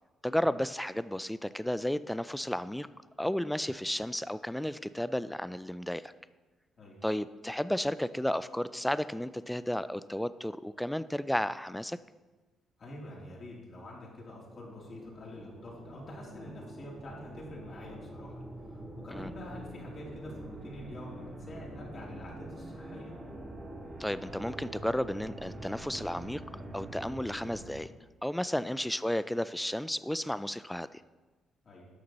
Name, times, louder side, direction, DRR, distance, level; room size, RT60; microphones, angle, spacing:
voice 1, 0.2-2.9 3.2-6.1 7.0-12.0 19.1-19.3 24.0-26.4 26.7-27.9 28.2-31.0, left 1 dB, 5° left, 15 dB, 0.4 m, -33 dB
voice 2, 12.8-23.2 31.6-31.9, left 1 dB, 45° left, -4 dB, 3.1 m, -46 dB
sound 1, 14.3-27.8, right 1 dB, 35° right, 2.0 m, -45 dB
11.5 x 6.4 x 4.1 m, 1.2 s
cardioid pair, 90°, 0 cm